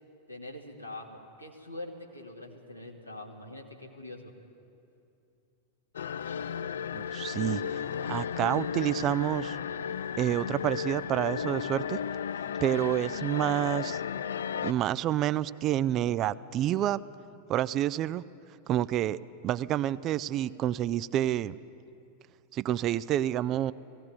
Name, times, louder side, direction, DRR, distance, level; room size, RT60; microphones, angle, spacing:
voice 1, 0.3-4.3, left 1 dB, 90° left, 0 dB, 2.1 m, -44 dB
sound 1, 6.0-14.7, left 7 dB, 65° left, 0.4 m, -34 dB
voice 2, 6.9-7.6 8.1-9.6 10.2-12.0 12.6-14.0 14.6-17.0 17.5-18.2 18.7-21.5 22.5-23.7, right 12 dB, 35° right, 16 dB, 0.4 m, -28 dB
18.5 x 16.5 x 9.4 m, 2.7 s
figure-of-eight pair, 90°, 0 cm